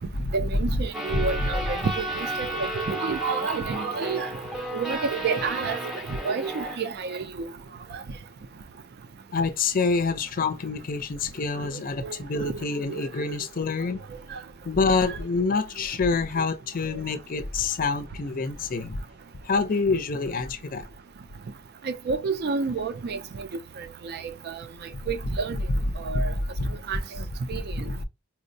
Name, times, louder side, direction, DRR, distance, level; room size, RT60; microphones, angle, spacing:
voice 1, 0.3-4.3 4.5-5.8 6.1-7.5 12.0-12.6 12.9-13.0 13.3-13.4 14.3-14.4 15.1-15.2 21.9-23.5 23.8-24.6 25.1-25.6 26.0-26.3 26.9-27.0 27.5-27.6, right 5 dB, 50° right, 0.4 m, -30 dB
sound 1, 0.9-6.8, right 1 dB, ahead, 0.6 m, -33 dB
voice 2, 9.3-14.0 14.6-19.0 19.4-20.9 26.1-26.8 27.7-28.0, left 4 dB, 40° left, 0.5 m, -27 dB
4.3 x 2.0 x 2.6 m
head